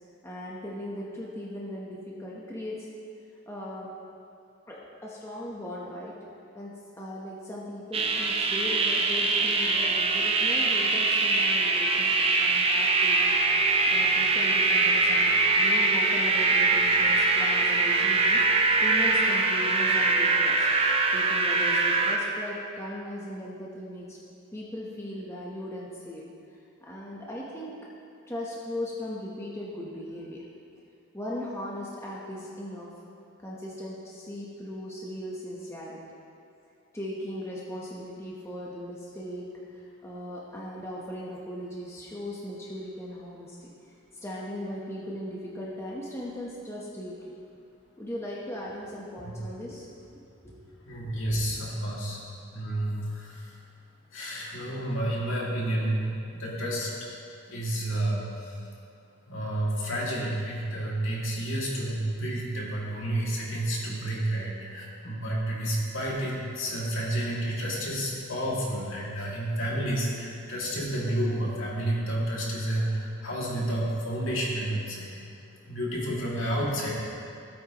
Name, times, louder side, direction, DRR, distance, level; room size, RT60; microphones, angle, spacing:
voice 1, 0.2-2.9 3.5-3.9 4.7-6.1 6.5-13.4 13.9-20.7 21.1-24.2 24.5-26.2 26.8-27.7 28.3-30.5 31.1-32.9 33.4-36.0 36.9-43.7 44.1-47.1 48.0-49.9 50.4-50.6, left 1 dB, 15° left, -5 dB, 1.0 m, -38 dB
sound 1, 7.9-22.2, right 3 dB, 25° right, 0.6 m, -23 dB
voice 2, 50.9-52.2 52.5-53.6 54.1-56.9 57.5-58.6 59.3-75.2 75.7-76.9, right 1 dB, 65° left, -5 dB, 2.3 m, -30 dB
16.5 x 8.7 x 3.0 m, 2.5 s
head